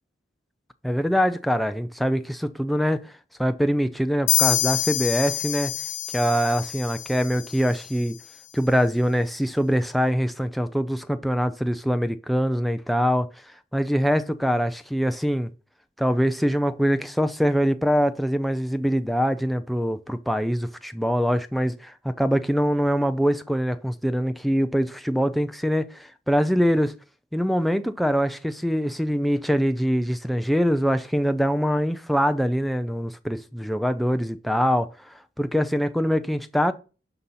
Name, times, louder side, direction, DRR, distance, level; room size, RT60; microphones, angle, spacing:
voice 1, 0.8-3.1 3.4-5.7 6.1-8.2 8.5-13.3 13.7-15.5 16.0-26.9 27.3-36.7, equal, ahead, 0.4 m, -23 dB
sound 1, 4.3-7.9, left 14 dB, 85° left, 0.5 m, -26 dB
11.5 x 4.0 x 5.7 m
head